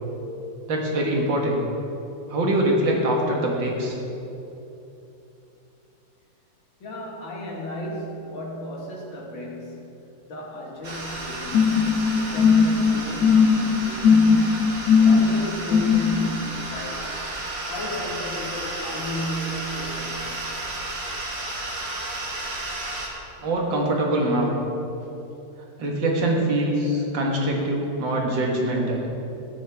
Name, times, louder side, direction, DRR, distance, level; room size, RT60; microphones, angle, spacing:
voice 1, 0.7-1.6 2.3-4.0 23.4-24.5 25.8-29.0, right 1 dB, 80° right, -1 dB, 2.2 m, -23 dB
voice 2, 6.8-10.0 10.2-14.7 15.0-17.2 17.7-20.5, equal, 90° left, -3 dB, 2.4 m, -34 dB
sound 1, 10.8-23.1, right 2 dB, 35° right, 1.4 m, -33 dB
sound 2, 11.5-16.3, left 5 dB, 70° left, 1.2 m, -18 dB
13.5 x 9.8 x 3.5 m, 2.9 s
omnidirectional pair, 2.0 m